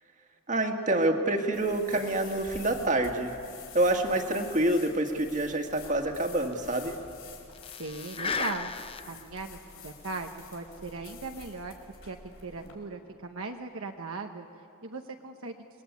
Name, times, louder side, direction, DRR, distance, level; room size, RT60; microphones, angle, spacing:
voice 1, 0.5-3.3 3.7-7.0, right 1 dB, 35° right, 4 dB, 1.8 m, -27 dB
sound 1, 1.5-12.7, left 5 dB, 65° left, 5.5 m, -48 dB
sound 2, 5.7-5.8 6.0-6.1 6.5-6.6 7.5-9.3 9.7-9.8 10.8-11.0, left 5 dB, 25° left, 0.6 m, -35 dB
voice 2, 7.8-8.7 9.1-11.8 12.0-14.5 14.8-15.5, right 3 dB, 65° right, 4 dB, 1.0 m, -38 dB
26.5 x 21.5 x 8.4 m, 2.6 s
head